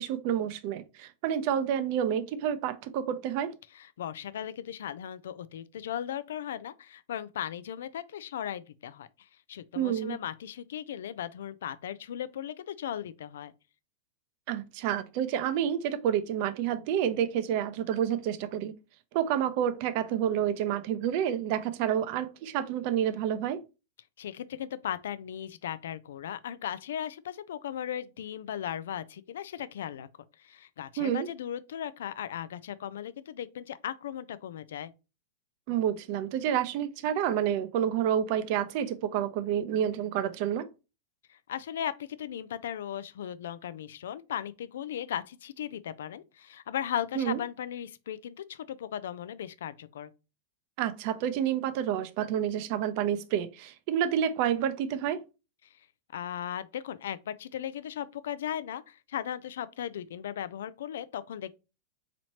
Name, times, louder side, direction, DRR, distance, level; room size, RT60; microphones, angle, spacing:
voice 1, 0.0-3.5 9.8-10.2 14.5-18.7 19.1-23.6 31.0-31.3 35.7-40.7 47.2-47.4 50.8-55.2, right 9 dB, 55° right, 0.5 m, -29 dB
voice 2, 3.7-13.5 24.2-30.1 30.4-34.9 41.3-50.1 56.1-61.5, left 10 dB, 80° left, 0.3 m, -37 dB
4.2 x 3.0 x 2.8 m
supercardioid pair, 135°, 0 cm